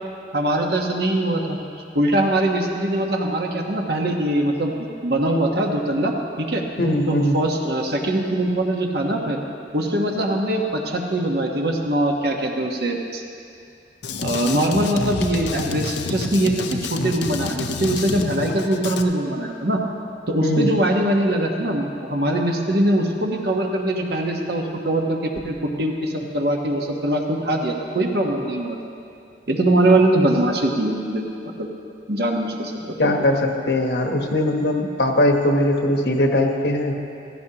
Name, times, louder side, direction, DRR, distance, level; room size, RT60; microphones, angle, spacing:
voice 1, 0.3-1.6 1.9-6.6 7.1-9.4 9.7-13.2 14.2-19.8 20.3-28.8 29.5-31.7 32.1-33.1, right 1 dB, 60° right, 1 dB, 1.2 m, -22 dB
voice 2, 6.8-7.4 20.4-20.7 33.0-37.0, left 1 dB, 65° left, 3 dB, 1.1 m, -20 dB
Drum kit, 14.0-19.0, left 4 dB, 80° left, 0.6 m, -28 dB
15.5 x 14.5 x 3.0 m, 2.5 s
head